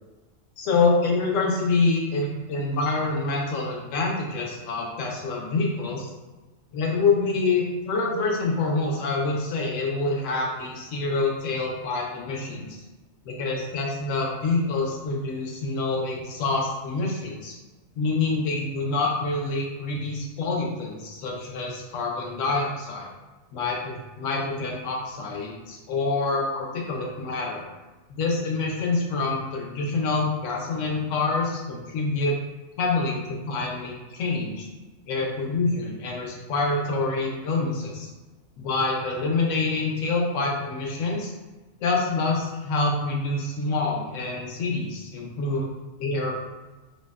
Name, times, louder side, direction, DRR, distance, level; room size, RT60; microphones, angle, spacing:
voice 1, 0.6-6.1 6.7-12.7 13.2-17.6 18.0-23.1 23.5-27.6 28.1-32.4 32.8-34.7 35.1-38.1 38.6-41.3 41.8-45.7 46.0-46.4, left 3 dB, 70° left, -1 dB, 0.9 m, -26 dB
2.7 x 2.0 x 2.2 m, 1.2 s
omnidirectional pair, 1.4 m